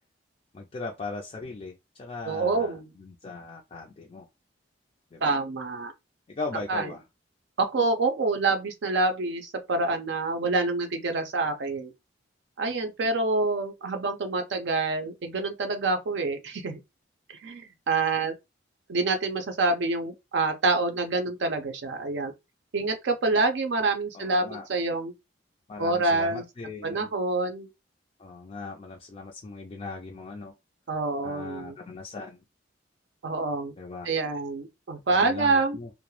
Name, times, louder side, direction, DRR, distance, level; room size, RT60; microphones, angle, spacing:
voice 1, 0.5-4.3 5.1-5.4 6.3-7.0 24.1-24.7 25.7-27.1 28.2-30.5 31.2-32.4 33.8-34.1 35.1-35.9, left 3 dB, 30° left, 0.4 m, -39 dB
voice 2, 2.2-2.9 5.2-5.9 6.7-6.9 7.6-11.9 12.6-16.8 17.4-18.3 18.9-22.3 22.7-25.1 25.8-26.4 26.8-27.7 30.9-31.8 33.2-33.7 34.0-35.8, right 3 dB, 65° right, 0.4 m, -27 dB
2.2 x 2.0 x 3.0 m
head